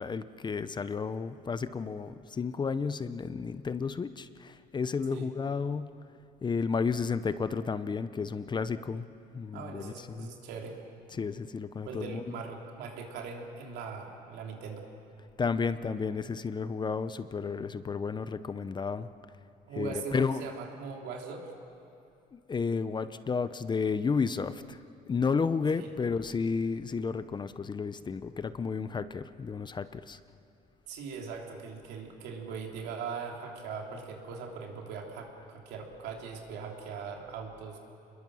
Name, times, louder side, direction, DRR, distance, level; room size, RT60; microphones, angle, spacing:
voice 1, 0.0-5.9 6.4-9.1 9.3-10.3 11.1-12.4 15.4-19.1 19.7-20.4 22.3-24.8 25.1-30.2, left 5 dB, 25° left, 13 dB, 0.7 m, -32 dB
voice 2, 9.5-10.8 11.8-14.9 19.7-21.5 25.7-25.9 30.9-37.8, right 5 dB, 85° right, 1 dB, 3.1 m, -40 dB
27.5 x 21.5 x 6.3 m, 2.6 s
cardioid pair, 110°, 17 cm